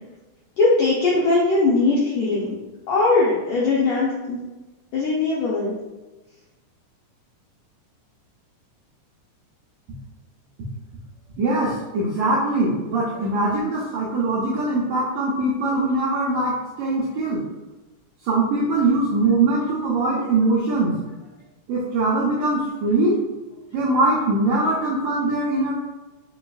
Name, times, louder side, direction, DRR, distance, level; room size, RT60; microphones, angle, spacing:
voice 1, 0.6-2.5 2.9-4.4 4.9-5.8, left 3 dB, 90° left, -5 dB, 1.5 m, -20 dB
voice 2, 11.4-17.4 18.2-21.0 21.7-23.2 23.7-25.7, right 2 dB, 85° right, -5 dB, 1.5 m, -22 dB
5.4 x 2.3 x 2.3 m, 1.1 s
omnidirectional pair, 3.7 m